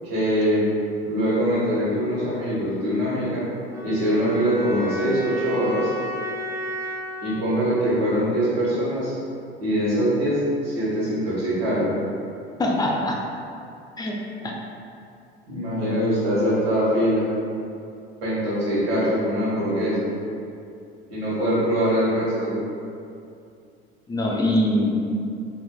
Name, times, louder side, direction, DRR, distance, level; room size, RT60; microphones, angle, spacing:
voice 1, 0.0-0.6 1.0-3.5 3.8-5.9 7.2-9.1 9.6-11.9 15.5-17.3 18.2-20.1 21.1-22.6, equal, 80° right, -9 dB, 1.2 m, -23 dB
sound 1, 3.7-8.7, left 1 dB, 10° right, 1.0 m, -34 dB
voice 2, 12.6-13.2 14.0-14.2 14.4-14.5 24.1-24.9, left 1 dB, 15° left, -2 dB, 0.5 m, -22 dB
3.6 x 2.6 x 2.2 m, 2.5 s
hypercardioid pair, 65°, 30 cm